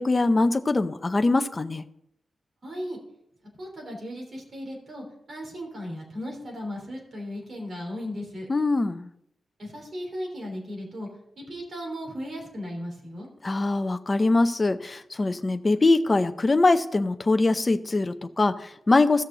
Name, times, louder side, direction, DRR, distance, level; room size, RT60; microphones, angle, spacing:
voice 1, 0.0-1.8 8.5-9.1 13.4-19.2, left 2 dB, 25° left, 9 dB, 0.6 m, -23 dB
voice 2, 2.6-3.0 3.6-8.5 9.6-11.1 11.4-13.3, equal, 45° right, 0 dB, 3.3 m, -36 dB
15.5 x 6.5 x 3.9 m, 0.76 s
wide cardioid pair, 150°, 0 cm